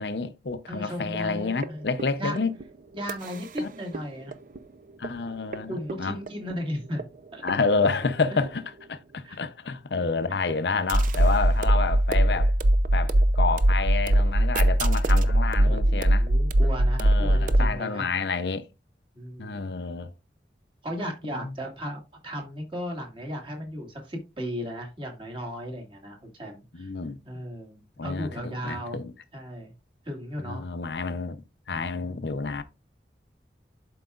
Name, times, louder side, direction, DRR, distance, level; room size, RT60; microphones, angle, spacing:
voice 1, 0.0-2.5 3.6-3.7 5.0-6.2 7.4-8.6 8.9-12.5 12.9-16.3 17.0-18.6 19.4-20.1 21.4-21.5 26.7-27.2 28.0-29.1 30.4-31.4 31.7-32.6, left 4 dB, 75° left, 0.7 m, -29 dB
voice 2, 0.7-1.9 2.2-2.4 2.9-4.4 5.7-7.0 7.3-7.4 8.3-8.4 9.2-9.4 15.6-18.1 19.1-19.6 20.8-26.9 27.3-29.0 29.3-29.7 30.1-30.6, equal, 30° right, 2.0 m, -35 dB
sound 1, 1.1-1.2 1.6-1.7 2.0-2.6 3.1-3.2 3.6-3.7 3.9-4.6 5.0-5.1 5.5-5.6 5.9-6.5 7.0-7.1 7.5-7.6 7.8-8.5 10.9-17.7, right 1 dB, 50° right, 0.5 m, -21 dB
11.5 x 4.7 x 2.4 m
head